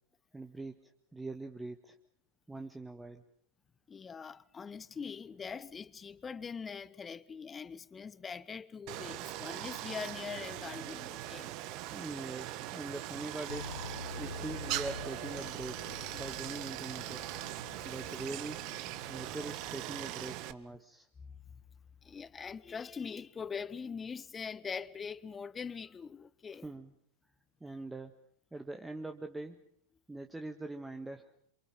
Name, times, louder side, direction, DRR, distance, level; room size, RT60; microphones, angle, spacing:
voice 1, 0.3-2.0 2.5-3.2 11.9-13.8 14.2-17.2 17.8-18.6 19.1-21.1 26.5-26.9 27.6-28.2 28.5-29.6 30.1-31.3, right 2 dB, 5° right, 1.7 m, -43 dB
voice 2, 3.9-11.5 22.0-26.7, left 6 dB, 20° left, 1.1 m, -42 dB
Stream, 8.9-20.5, right 15 dB, 40° right, 1.6 m, -41 dB
sound 1, 13.5-20.5, left 5 dB, 70° left, 1.4 m, -48 dB
28.5 x 27.5 x 5.6 m
figure-of-eight pair, 90°, 0 cm